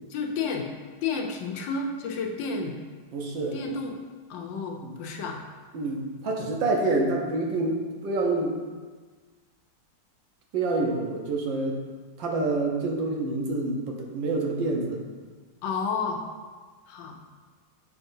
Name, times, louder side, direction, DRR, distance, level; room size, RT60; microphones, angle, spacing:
voice 1, 0.1-0.7 1.0-2.8 3.5-4.0 4.3-5.4 15.6-16.2 16.9-17.2, left 4 dB, 85° left, 3 dB, 1.5 m, -31 dB
voice 2, 3.1-3.5 4.8-5.0 5.7-8.6 10.5-11.8 12.2-15.0, right 2 dB, 85° right, 1 dB, 1.6 m, -27 dB
7.6 x 5.9 x 2.7 m, 1.5 s
omnidirectional pair, 2.0 m